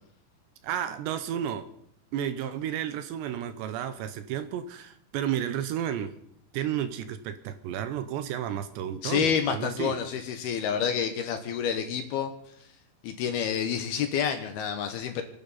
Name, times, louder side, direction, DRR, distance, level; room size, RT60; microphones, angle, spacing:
voice 1, 0.6-1.7 2.1-6.1 6.5-10.0, right 10 dB, 75° right, 10 dB, 2.9 m, -32 dB
voice 2, 9.0-12.3 13.0-15.2, left 8 dB, 70° left, 6 dB, 2.7 m, -28 dB
29.0 x 10.0 x 4.2 m, 0.68 s
omnidirectional pair, 5.3 m